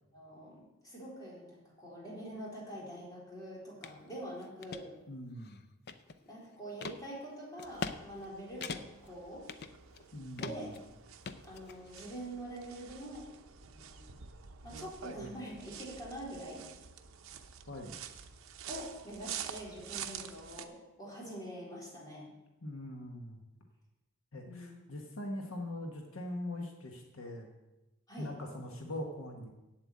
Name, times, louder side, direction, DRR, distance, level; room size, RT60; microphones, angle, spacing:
voice 1, 0.1-4.9 6.2-9.5 10.4-10.8 11.4-13.3 13.7-14.0 14.6-16.6 18.7-22.3 24.4-24.8 28.1-28.3, equal, 20° left, -5 dB, 3.8 m, -45 dB
sound 1, 3.8-4.0 4.4-4.8 5.4-6.3 6.8-7.0 7.6-8.0 8.2-8.3 8.6-9.1 9.5-10.1 10.4-10.8 11.2-12.0, left 4 dB, 50° left, 0.6 m, -41 dB
voice 2, 5.1-5.6 10.1-10.8 17.7-18.0 22.6-23.4 24.3-27.5 28.2-29.5, left 1 dB, 75° left, 2 dB, 1.3 m, -42 dB
sound 2, 7.6-20.6, right 8 dB, 80° right, 0.8 m, -48 dB
8.0 x 7.6 x 8.5 m, 1.0 s
head